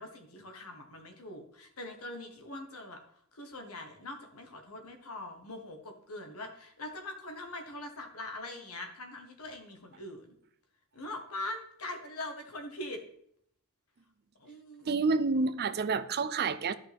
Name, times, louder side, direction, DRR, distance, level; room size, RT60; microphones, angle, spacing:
voice 1, 0.0-3.0 3.3-10.3 10.9-13.0 14.4-15.0, left 1 dB, 80° left, 1.4 m, -42 dB
voice 2, 14.8-16.7, right 4 dB, 50° right, 0.5 m, -29 dB
13.0 x 5.7 x 3.5 m
head